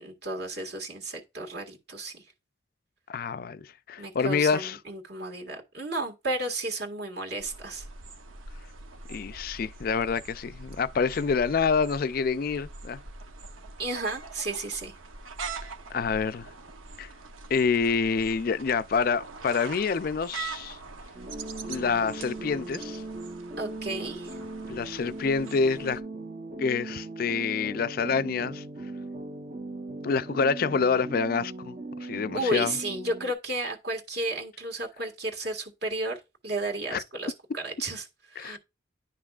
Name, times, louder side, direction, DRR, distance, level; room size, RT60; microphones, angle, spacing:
voice 1, 0.0-2.2 4.0-7.9 13.8-14.9 23.6-24.4 32.0-36.1 36.4-38.1 38.3-38.6, right 2 dB, 55° right, 1.8 m, -33 dB
voice 2, 3.1-4.8 9.1-13.0 15.9-16.5 17.0-17.1 17.5-20.8 21.7-23.0 24.7-26.0 26.6-28.6 30.0-31.7 32.0-32.8 36.9-37.0 38.4-38.6, left 5 dB, 45° left, 0.3 m, -27 dB
sound 1, 7.4-26.0, right 4 dB, 90° right, 0.9 m, -43 dB
sound 2, 21.1-33.3, right 2 dB, 40° right, 0.9 m, -39 dB
10.5 x 5.8 x 2.4 m
head